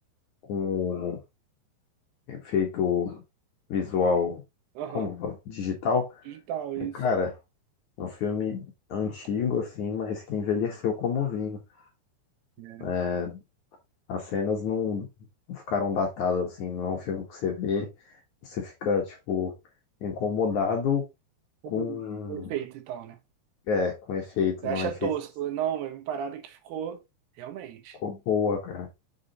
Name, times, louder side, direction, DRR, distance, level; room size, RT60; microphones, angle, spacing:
voice 1, 0.5-1.2 2.3-3.2 3.7-4.4 4.9-6.1 6.9-7.3 8.0-8.6 8.9-11.6 12.8-13.4 14.1-15.1 15.5-17.9 18.4-19.5 20.0-21.1 21.7-22.5 23.7-25.1 28.0-28.9, left 6 dB, 60° left, 2.3 m, -28 dB
voice 2, 4.8-5.1 6.3-7.0 12.6-12.9 21.6-22.0 22.3-23.2 24.6-27.0 27.4-28.0, right 10 dB, 75° right, 2.9 m, -34 dB
7.0 x 4.8 x 3.9 m
omnidirectional pair, 4.9 m